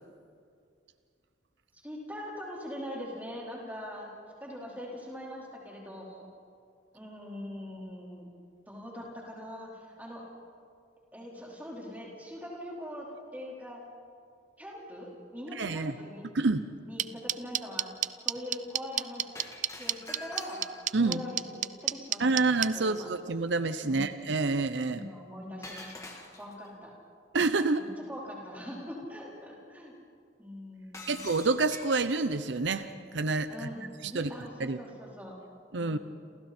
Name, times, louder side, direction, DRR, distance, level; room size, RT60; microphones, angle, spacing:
voice 1, 1.7-4.1 4.4-6.2 6.9-8.3 8.7-10.2 11.1-13.8 14.6-16.3 16.8-17.9 18.2-19.4 19.7-20.6 21.0-22.4 22.7-23.1 23.8-24.1 24.9-26.1 26.4-26.9 27.8-29.9 30.4-31.2 33.5-35.4 35.7-36.0, left 1 dB, 10° right, -4 dB, 4.4 m, -42 dB
voice 2, 15.5-15.9 16.3-16.7 20.9-21.2 22.2-25.1 27.3-27.9 31.1-32.9 33.1-33.7 34.0-34.3 34.6-34.8 35.7-36.0, right 3 dB, 80° right, 11 dB, 0.8 m, -28 dB
sound 1, 17.0-22.7, right 12 dB, 40° right, 0.5 m, -28 dB
Shatter, 19.4-21.0 25.6-26.7 30.9-32.2, left 2 dB, 15° left, 2.0 m, -45 dB
29.0 x 27.5 x 4.4 m, 2.4 s
head